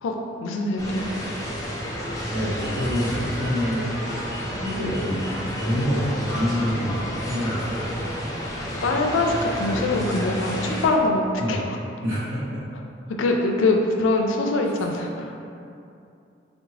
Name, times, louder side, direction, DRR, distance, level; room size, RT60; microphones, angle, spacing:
voice 1, 0.0-1.1 8.8-11.8 13.2-15.3, left 2 dB, 90° left, 2 dB, 0.4 m, -23 dB
sound 1, 0.8-10.9, equal, 20° left, 0.4 m, -30 dB
voice 2, 2.3-3.9 4.6-6.9 7.3-8.0 11.4-11.6 12.0-12.2, equal, 85° right, -12 dB, 0.8 m, -26 dB
3.5 x 2.0 x 3.2 m, 2.6 s
head